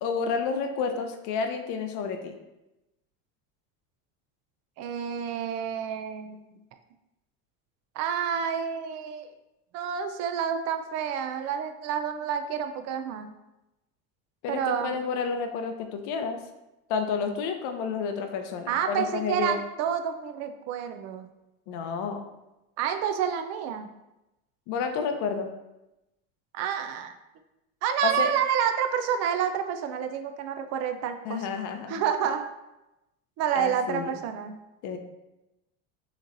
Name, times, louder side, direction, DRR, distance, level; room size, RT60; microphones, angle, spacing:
voice 1, 0.0-2.4 14.4-16.4 16.9-19.6 21.7-22.2 24.7-25.5 28.0-28.3 31.2-32.3 33.5-34.2 34.8-35.0, left 5 dB, 60° left, 6 dB, 0.7 m, -30 dB
voice 2, 4.8-6.4 8.0-9.3 9.7-13.3 14.5-15.0 18.7-21.3 22.8-23.9 26.5-27.1 27.8-31.5 31.9-32.4 33.4-34.6, right 8 dB, 50° right, 7 dB, 0.5 m, -29 dB
6.5 x 3.0 x 2.6 m, 0.95 s
supercardioid pair, 135°, 34 cm